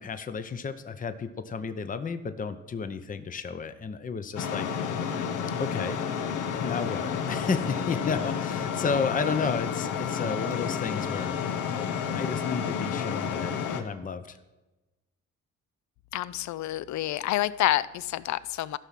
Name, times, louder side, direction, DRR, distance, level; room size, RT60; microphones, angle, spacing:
voice 1, 0.0-4.7 5.6-6.0 6.6-11.6 11.9-14.4, left 5 dB, 25° left, 10 dB, 0.7 m, -32 dB
sound 1, 4.4-13.8, left 7 dB, 85° left, 1.0 m, -30 dB
voice 2, 16.1-18.8, left 14 dB, 70° left, 18 dB, 0.5 m, -28 dB
13.5 x 6.1 x 5.8 m, 1.1 s
cardioid pair, 90°, 30 cm